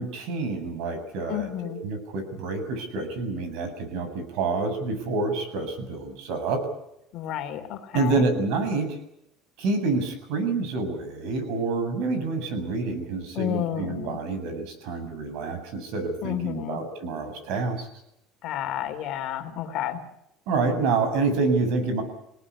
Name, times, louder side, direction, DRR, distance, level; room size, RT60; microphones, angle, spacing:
voice 1, 0.0-6.6 7.9-9.0 9.6-17.9 20.5-22.0, right 3 dB, 70° right, 8 dB, 7.6 m, -28 dB
voice 2, 1.3-1.8 7.1-8.3 13.3-14.2 16.2-16.8 18.4-20.0, left 11 dB, 50° left, 7 dB, 3.1 m, -31 dB
28.0 x 18.5 x 8.5 m, 0.80 s
cardioid pair, 165°, 0 cm